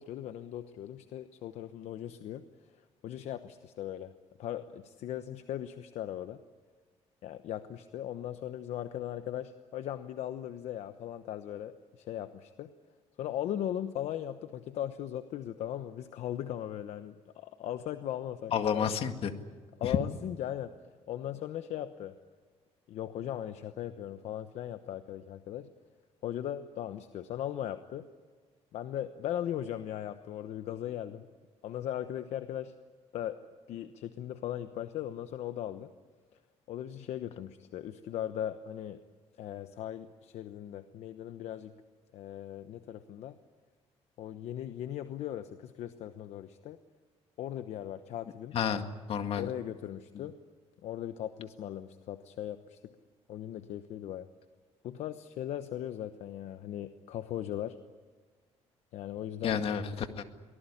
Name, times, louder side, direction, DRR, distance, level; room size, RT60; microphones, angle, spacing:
voice 1, 0.0-2.4 3.0-4.1 4.4-6.4 7.2-12.7 13.2-18.9 19.8-20.7 21.1-22.1 22.9-25.7 26.2-28.0 28.7-31.3 31.6-32.7 33.1-33.4 33.7-35.9 36.7-39.0 39.4-41.7 42.1-43.4 44.2-46.8 47.4-48.6 49.4-50.3 50.8-52.9 53.3-54.3 54.8-57.8 58.9-59.6, left 11 dB, 70° left, 10 dB, 1.0 m, -38 dB
voice 2, 18.5-19.3 19.8-20.0 48.5-48.8 49.1-49.5 50.1-50.3 59.4-60.2, left 8 dB, 55° left, 7 dB, 2.0 m, -30 dB
24.5 x 19.0 x 10.0 m, 1.4 s
cardioid pair, 140°, 12 cm